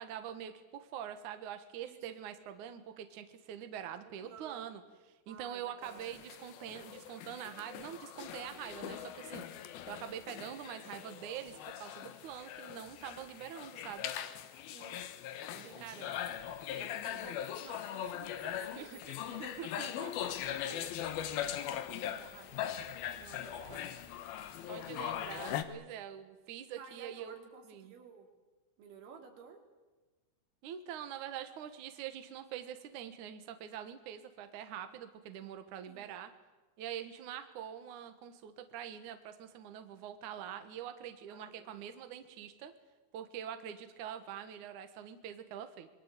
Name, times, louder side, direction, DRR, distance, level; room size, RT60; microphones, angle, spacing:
voice 1, 0.0-4.8 5.3-9.4 9.9-14.1 15.6-16.1 16.7-17.3 18.8-19.0 19.4-20.7 23.2-23.9 24.7-27.4 27.7-27.9 30.6-36.3 36.8-42.7 43.1-45.9, right 9 dB, 60° right, 8 dB, 2.2 m, -45 dB
voice 2, 4.2-4.8 5.3-6.1 14.7-15.0 15.5-16.1 16.9-22.6 23.4-23.9 24.7-25.6 26.8-28.3 28.8-29.6 35.9-36.1 41.3-41.9, right 6 dB, 80° right, 3 dB, 5.7 m, -54 dB
sound 1, 5.8-25.6, left 10 dB, 65° left, 2.6 m, -41 dB
26.0 x 22.5 x 8.3 m, 1.2 s
omnidirectional pair, 5.3 m